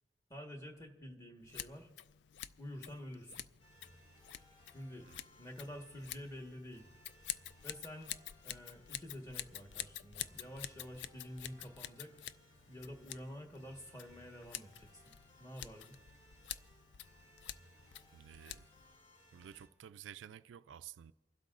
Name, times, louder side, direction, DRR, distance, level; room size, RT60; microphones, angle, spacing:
voice 1, 0.3-1.9 2.6-3.5 4.7-5.1 5.4-6.9 7.6-8.1 8.4-12.1 12.7-15.1 15.4-16.0, equal, 15° left, 1.4 m, -49 dB
Scissors, 1.5-19.0, left 12 dB, 65° left, 0.3 m, -49 dB
sound 1, 3.6-19.7, equal, 35° left, 2.5 m, -64 dB
voice 2, 18.1-18.7 19.3-21.1, right 9 dB, 80° right, 0.3 m, -52 dB
29.0 x 12.0 x 2.5 m
head